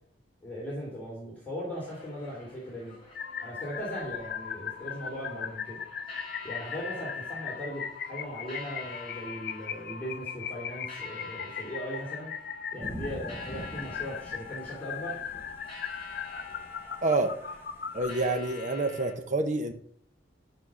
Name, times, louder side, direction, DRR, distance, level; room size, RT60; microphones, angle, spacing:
voice 1, 0.4-2.9 3.4-5.8 6.4-12.3 12.7-15.2, equal, 10° left, -6 dB, 2.9 m, -38 dB
sound 1, 1.8-19.1, left 3 dB, 30° left, 2.6 m, -48 dB
sound 2, 3.1-18.1, left 7 dB, 55° left, 0.7 m, -38 dB
Thunder / Rain, 12.8-18.5, equal, 10° right, 1.0 m, -45 dB
voice 2, 17.0-17.3 17.9-19.7, right 2 dB, 40° right, 7 dB, 0.9 m, -27 dB
11.0 x 4.8 x 6.3 m, 0.66 s
head